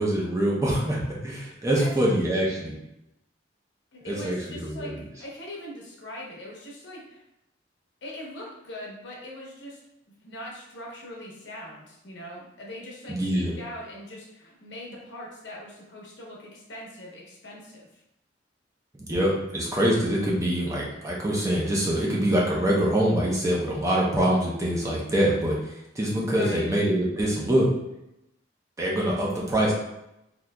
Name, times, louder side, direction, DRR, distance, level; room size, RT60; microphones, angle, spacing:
voice 1, 0.0-2.7 4.1-4.9 13.1-13.5 19.0-27.7 28.8-29.7, right 1 dB, 15° right, -4 dB, 0.6 m, -24 dB
voice 2, 3.9-7.2 8.0-9.8 10.2-17.9 26.3-26.7, left 1 dB, 75° left, -3 dB, 0.9 m, -41 dB
3.7 x 2.8 x 2.2 m, 0.85 s
head